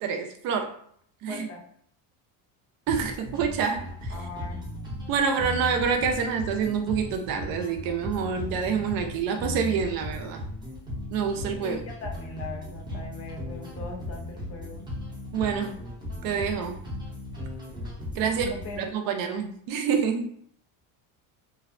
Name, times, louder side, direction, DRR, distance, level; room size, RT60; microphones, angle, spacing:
voice 1, 0.0-0.7 1.2-1.5 2.9-4.1 5.1-10.4 11.1-11.8 15.3-15.7 16.2-16.8 18.2-18.5 18.8-20.3, right 6 dB, 60° right, 5 dB, 0.5 m, -27 dB
voice 2, 1.3-1.6 4.1-4.6 11.6-14.8 18.2-18.9, left 3 dB, 35° left, 0 dB, 0.6 m, -40 dB
sound 1, 2.9-18.9, left 1 dB, 10° right, 0.6 m, -37 dB
2.6 x 2.0 x 2.4 m, 0.63 s
cardioid pair, 150°, 40 cm